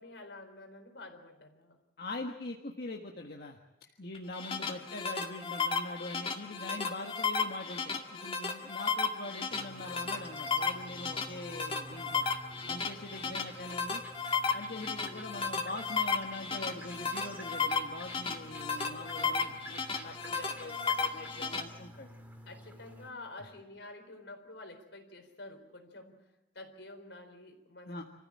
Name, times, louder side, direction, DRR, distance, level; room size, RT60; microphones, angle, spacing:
voice 1, 0.0-1.8 3.8-4.1 4.5-4.8 15.0-15.4 19.1-19.6 22.5-28.0, left 2 dB, 85° left, 6 dB, 4.2 m, -49 dB
voice 2, 2.0-3.6 4.0-12.2 12.7-14.0 14.5-22.2 23.4-23.5 27.9-28.0, left 2 dB, 60° left, 1 dB, 1.6 m, -43 dB
sound 1, 4.1-21.6, left 5 dB, 30° left, 2.1 m, -34 dB
sound 2, 9.5-23.1, right 1 dB, 10° right, 2.1 m, -50 dB
27.5 x 15.0 x 8.7 m, 0.97 s
head